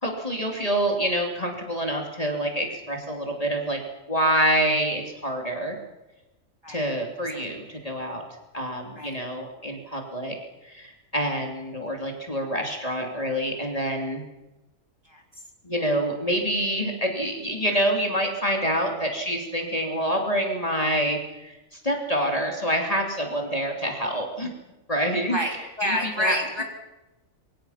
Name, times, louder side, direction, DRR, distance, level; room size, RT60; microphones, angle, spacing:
voice 1, 0.0-3.8 4.1-5.8 6.7-8.2 8.5-10.4 10.6-14.2 15.6-24.5 24.9-25.4 25.8-26.4, equal, 25° left, 1 dB, 3.0 m, -26 dB
voice 2, 25.3-26.6, left 1 dB, 20° right, 1 dB, 3.6 m, -28 dB
27.0 x 24.0 x 5.8 m, 1.0 s
omnidirectional pair, 1.4 m